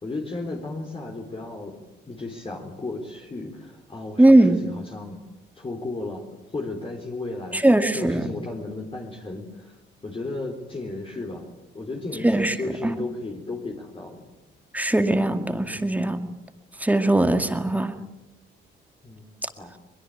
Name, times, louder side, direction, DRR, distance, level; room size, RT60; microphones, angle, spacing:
voice 1, 0.0-5.2 5.6-9.8 10.0-14.3 15.8-16.1 19.0-19.7, left 2 dB, 25° left, 1 dB, 3.7 m, -35 dB
voice 2, 4.2-4.7 7.5-8.3 12.2-12.5 12.8-12.9 14.7-16.3 16.8-17.9, right 1 dB, 10° right, 7 dB, 2.2 m, -19 dB
22.5 x 21.5 x 8.8 m, 0.99 s
cardioid pair, 90°, 20 cm